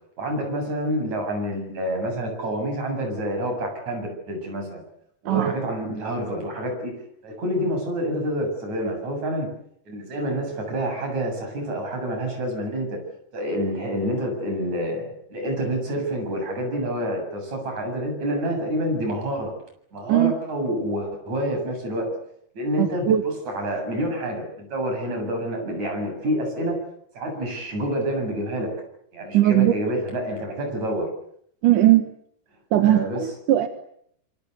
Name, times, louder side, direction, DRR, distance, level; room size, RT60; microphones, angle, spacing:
voice 1, 0.2-4.8 5.2-6.9 7.2-9.5 9.9-13.0 13.3-19.5 19.9-22.2 22.6-26.8 27.1-28.7 29.1-31.1 32.8-33.3, equal, 45° right, 3 dB, 8.8 m, -28 dB
voice 2, 22.8-23.2 29.3-29.7 31.6-32.0 32.7-33.7, right 13 dB, 65° right, 8 dB, 2.6 m, -18 dB
27.0 x 24.5 x 8.1 m, 0.68 s
omnidirectional pair, 4.5 m